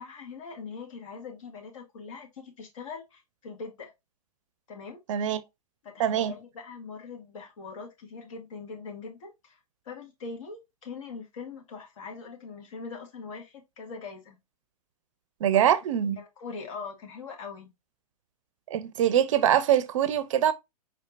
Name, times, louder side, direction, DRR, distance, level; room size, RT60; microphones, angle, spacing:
voice 1, 0.0-3.9 4.7-5.0 5.8-9.6 9.9-14.4 15.5-15.7 16.2-17.7, left 4 dB, 55° left, 2.0 m, -42 dB
voice 2, 5.1-5.4 6.0-6.3 15.4-16.2 18.7-20.5, right 10 dB, 55° right, 0.6 m, -23 dB
4.7 x 4.2 x 2.6 m
figure-of-eight pair, 115°, 20 cm